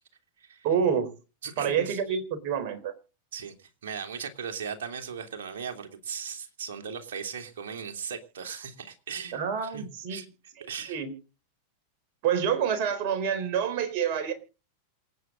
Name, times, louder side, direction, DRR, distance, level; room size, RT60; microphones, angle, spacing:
voice 1, 0.6-1.1 1.6-2.9 9.3-10.2 10.6-11.1 12.2-14.3, right 7 dB, 45° right, 7 dB, 4.0 m, -28 dB
voice 2, 1.4-2.0 3.3-3.5 3.8-10.3 10.7-11.0, right 6 dB, 60° right, 5 dB, 3.0 m, -38 dB
27.5 x 9.2 x 3.9 m, 0.34 s
figure-of-eight pair, 90°, 0 cm